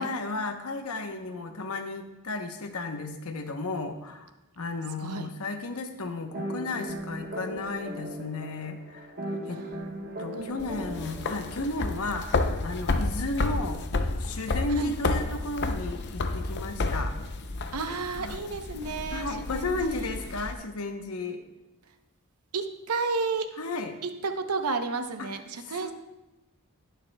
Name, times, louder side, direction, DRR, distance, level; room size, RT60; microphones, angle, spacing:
voice 1, 0.0-4.3 4.6-9.1 9.5-9.6 10.2-13.8 14.2-17.1 18.2-18.4 19.1-21.4 23.6-24.0 25.2-25.3 25.7-25.9, left 2 dB, 70° left, 6 dB, 0.9 m, -34 dB
voice 2, 5.0-5.3 10.4-10.6 14.7-14.9 17.7-20.1 22.5-23.5 24.0-25.9, right 4 dB, 85° right, 8 dB, 0.8 m, -32 dB
sound 1, 6.3-12.0, right 1 dB, 45° right, 1.2 m, -38 dB
sound 2, 10.6-20.5, left 3 dB, 50° left, 0.6 m, -31 dB
19.5 x 6.7 x 2.3 m, 0.98 s
head